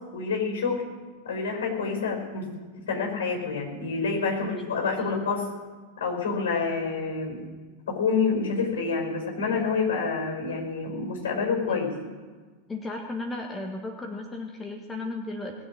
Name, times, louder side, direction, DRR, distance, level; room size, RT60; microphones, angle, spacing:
voice 1, 0.1-0.8 1.2-5.5 6.0-7.5 7.9-11.9, left 4 dB, 60° left, 1 dB, 5.2 m, -28 dB
voice 2, 12.7-15.7, left 2 dB, 15° left, 2 dB, 1.6 m, -35 dB
19.5 x 7.0 x 8.7 m, 1.4 s
figure-of-eight pair, 90°, 0 cm